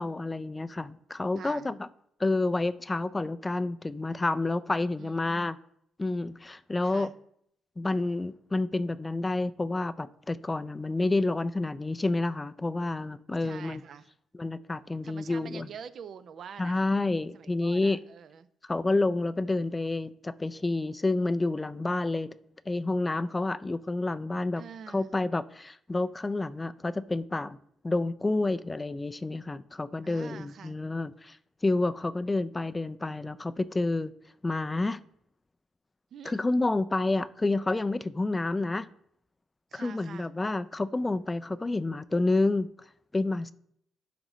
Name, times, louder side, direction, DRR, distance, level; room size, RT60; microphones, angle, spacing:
voice 1, 0.0-1.9 2.2-5.6 6.0-7.1 7.8-13.8 14.4-15.7 16.6-18.0 18.7-22.3 22.7-24.6 24.9-27.6 27.8-31.4 31.6-34.1 34.4-35.0 36.3-38.9 39.7-42.7 43.1-43.5, left 2 dB, 20° left, 0.3 m, -29 dB
voice 2, 1.4-1.7 5.0-5.3 6.8-7.1 13.4-14.1 15.0-16.8 17.3-18.5 24.5-25.2 30.0-30.8 36.1-36.4 39.7-40.3, right 7 dB, 60° right, 0.5 m, -46 dB
11.0 x 5.1 x 3.1 m
cardioid pair, 90°, 0 cm